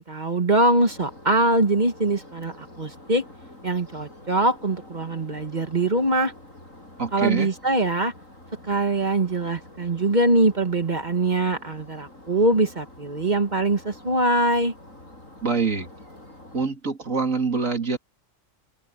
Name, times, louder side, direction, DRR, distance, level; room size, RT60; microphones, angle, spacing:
voice 1, 0.0-3.2 3.6-6.3 7.1-8.1 8.7-14.7, right 2 dB, 35° right, 1.6 m, -22 dB
sound 1, 0.6-16.7, left 1 dB, 90° left, 8.3 m, -47 dB
voice 2, 7.0-7.5 15.4-15.9 16.5-18.0, right 5 dB, 85° right, 3.2 m, -25 dB
open air
omnidirectional pair, 1.3 m